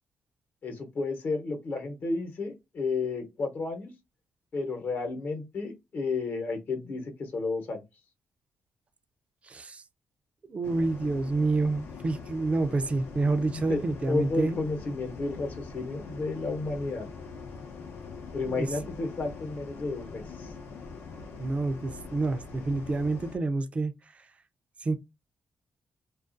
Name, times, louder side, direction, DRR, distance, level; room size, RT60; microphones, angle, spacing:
voice 1, 0.6-3.9 4.5-7.8 13.5-13.8 14.1-17.1 18.3-20.5, left 3 dB, 55° left, 0.9 m, -32 dB
voice 2, 9.5-9.8 10.5-14.6 18.5-18.7 21.4-23.9 24.8-25.0, right 3 dB, 30° right, 0.4 m, -28 dB
sound 1, 10.6-23.4, left 4 dB, 75° left, 0.7 m, -43 dB
2.4 x 2.4 x 2.5 m
cardioid pair, 90°, 4 cm